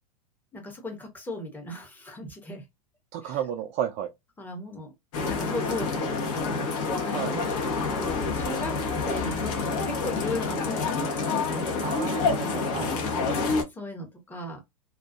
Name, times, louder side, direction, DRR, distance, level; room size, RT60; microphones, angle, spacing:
voice 1, 0.5-2.6 3.2-3.4 4.4-4.9 5.3-7.4 7.8-12.0 13.3-14.6, left 1 dB, 10° left, 0.9 m, -37 dB
voice 2, 3.1-4.1 7.1-7.3 11.8-13.0, right 9 dB, 35° right, 0.4 m, -32 dB
sound 1, 5.1-13.6, left 4 dB, 50° left, 0.8 m, -28 dB
2.3 x 2.3 x 2.4 m
figure-of-eight pair, 95°, 20 cm